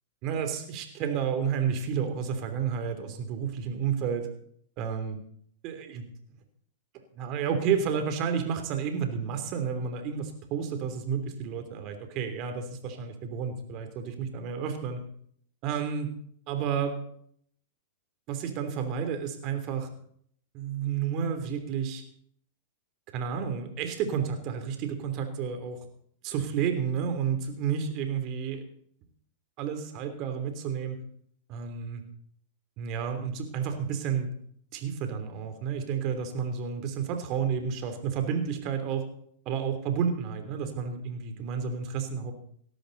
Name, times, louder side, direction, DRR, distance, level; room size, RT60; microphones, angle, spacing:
voice 1, 0.2-4.3 4.8-5.2 5.6-6.0 7.2-15.0 15.6-16.1 16.5-17.0 18.3-19.9 20.5-22.0 23.1-25.8 26.2-28.6 29.6-31.0 31.5-32.0 32.8-34.3 34.7-39.0 39.4-42.3, right 7 dB, 45° right, 7 dB, 3.2 m, -31 dB
18.0 x 13.0 x 4.1 m, 0.64 s
hypercardioid pair, 110°, 0 cm